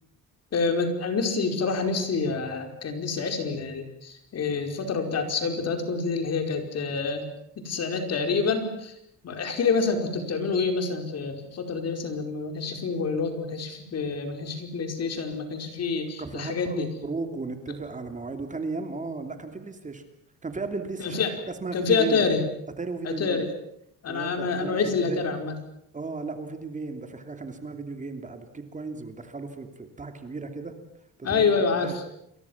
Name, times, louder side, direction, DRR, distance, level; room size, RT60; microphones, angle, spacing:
voice 1, 0.5-7.2 7.6-8.9 9.2-16.9 21.0-21.3 21.7-22.4 23.0-23.5 24.0-25.5 31.2-31.9, left 4 dB, 50° left, 6 dB, 5.0 m, -27 dB
voice 2, 16.2-20.0 20.4-22.3 22.8-23.5 24.1-25.3 25.9-30.8 31.2-31.5 31.8-32.0, right 3 dB, 20° right, 7 dB, 2.9 m, -35 dB
29.5 x 23.0 x 7.3 m, 0.75 s
cardioid pair, 145°, 33 cm